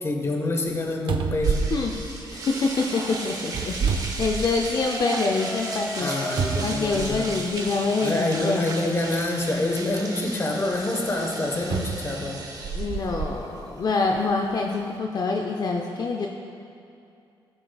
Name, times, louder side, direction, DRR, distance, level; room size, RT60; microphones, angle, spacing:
voice 1, 0.0-1.6 6.0-7.4 8.0-12.4, left 2 dB, 30° left, 1 dB, 1.2 m, -27 dB
sound 1, 0.7-0.8 1.1-2.8 3.5-4.9 5.3-5.4 6.4-7.5 8.4-8.5 11.7-13.4 14.0-14.2, right 6 dB, 75° right, 0.5 m, -28 dB
sound 2, 1.4-15.0, right 2 dB, 45° right, 1.0 m, -36 dB
voice 2, 1.7-6.1 6.6-8.7 12.7-16.3, left 3 dB, 50° left, 1 dB, 0.5 m, -26 dB
sound 3, 4.8-10.4, equal, 5° right, 0.7 m, -38 dB
15.0 x 6.8 x 2.3 m, 2.6 s
cardioid pair, 105°, 9 cm